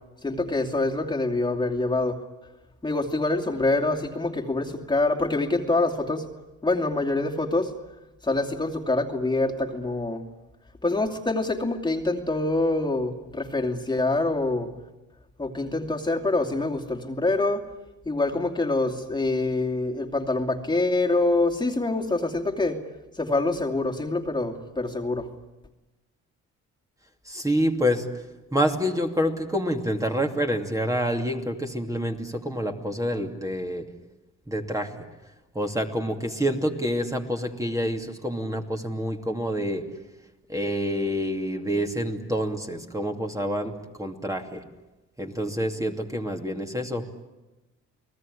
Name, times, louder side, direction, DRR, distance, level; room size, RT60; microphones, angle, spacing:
voice 1, 0.2-2.2 2.8-6.2 6.6-7.7 8.2-10.2 10.8-14.7 15.4-17.6 18.0-22.8 23.1-25.3, left 2 dB, 15° left, 1 dB, 2.6 m, -25 dB
voice 2, 27.3-28.1 28.5-33.9 34.5-34.9 35.5-39.9 40.5-43.7 44.0-44.6 45.2-47.1, equal, 10° right, 3 dB, 2.7 m, -27 dB
30.0 x 19.0 x 10.0 m, 1.1 s
cardioid pair, 90°, 30 cm